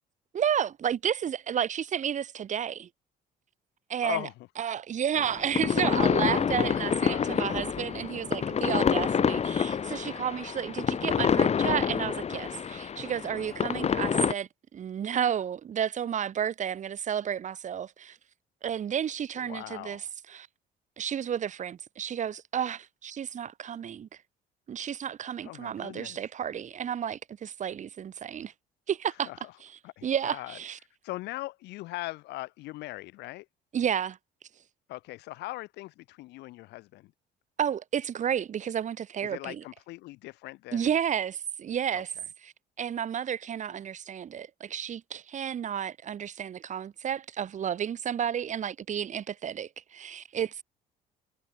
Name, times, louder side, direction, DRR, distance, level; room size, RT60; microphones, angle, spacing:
voice 1, 0.3-2.9 3.9-4.3 4.6-18.2 18.6-20.0 20.3-20.5 21.0-24.1 24.7-28.5 28.9-29.3 29.6-29.7 30.0-30.8 33.7-34.2 37.6-39.6 40.7-42.1 42.4-50.6, right 8 dB, 45° right, 2.2 m, -31 dB
voice 2, 4.0-4.3 6.6-7.4 19.3-20.1 25.4-26.2 29.2-29.5 29.8-30.6 31.0-33.4 34.9-37.1 39.2-40.9 41.9-42.0, left 19 dB, 85° left, 3.4 m, -40 dB
sound 1, 5.2-14.3, left 7 dB, 40° left, 3.3 m, -27 dB
cardioid pair, 110°, 17 cm